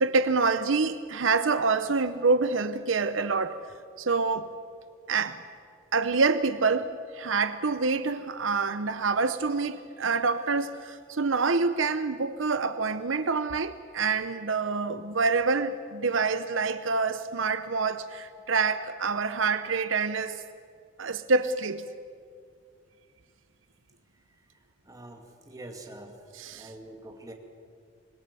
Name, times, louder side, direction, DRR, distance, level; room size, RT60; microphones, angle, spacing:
voice 1, 0.0-3.6 4.0-4.5 5.1-5.4 5.9-20.4 21.0-21.9 26.4-26.7, right 4 dB, 80° right, 11 dB, 0.8 m, -26 dB
voice 2, 24.9-26.2 26.5-27.3, right 1 dB, 20° right, 2 dB, 2.5 m, -45 dB
25.5 x 21.0 x 6.9 m, 2.1 s
head